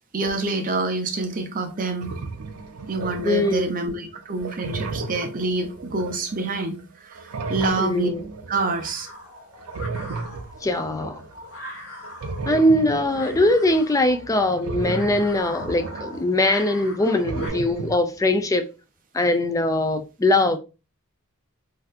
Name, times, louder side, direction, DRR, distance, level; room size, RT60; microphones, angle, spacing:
voice 1, 0.1-2.2 2.9-8.1 8.5-9.1, right 3 dB, 40° right, 0.6 m, -27 dB
sound 1, 1.2-1.3 1.7-3.7 4.1-6.8 7.1-8.9 9.5-11.4 12.0-16.7 17.0-18.0, right 4 dB, 85° right, 0.5 m, -34 dB
voice 2, 3.2-3.7 7.8-8.2 10.6-11.2 12.4-18.7 19.1-20.6, left 1 dB, 15° left, 0.4 m, -21 dB
sound 2, 7.6-17.5, left 1 dB, 65° left, 1.7 m, -42 dB
3.2 x 2.7 x 2.4 m
head